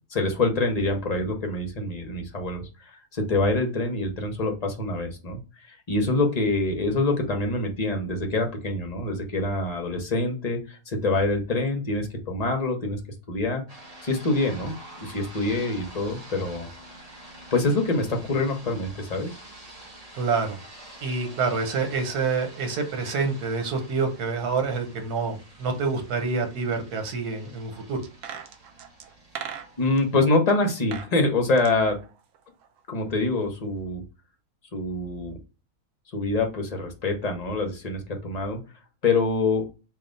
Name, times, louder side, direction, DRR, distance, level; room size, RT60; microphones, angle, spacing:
voice 1, 0.1-5.4 5.7-13.0 13.3-13.6 14.0-14.7 15.0-16.7 17.5-19.3 29.8-32.0 32.9-34.0 34.7-35.3 36.1-38.6 39.0-39.7, left 2 dB, 40° left, 3 dB, 0.6 m, -25 dB
sound 1, 13.7-30.2, right 1 dB, 30° right, 0.9 m, -47 dB
voice 2, 20.1-20.6 21.0-28.0, right 4 dB, 90° right, 5 dB, 1.4 m, -27 dB
sound 2, 28.0-30.0 30.7-31.1 31.4-32.8 33.1-33.2, right 8 dB, 70° right, 0.9 m, -39 dB
3.4 x 2.4 x 3.8 m, 0.32 s
omnidirectional pair, 1.6 m